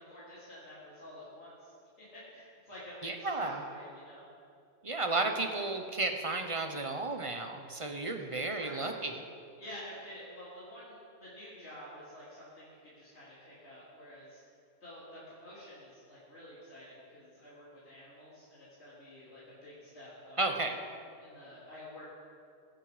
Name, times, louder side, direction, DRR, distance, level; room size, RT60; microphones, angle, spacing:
voice 1, 0.0-1.7 2.1-4.2 8.1-8.9 9.6-14.4 14.8-20.8 21.2-22.1, equal, 55° left, -10 dB, 3.7 m, -49 dB
voice 2, 3.0-3.6 4.8-9.2 20.4-20.8, right 2 dB, 25° right, 5 dB, 1.0 m, -33 dB
22.5 x 8.9 x 5.2 m, 2.4 s
omnidirectional pair, 1.3 m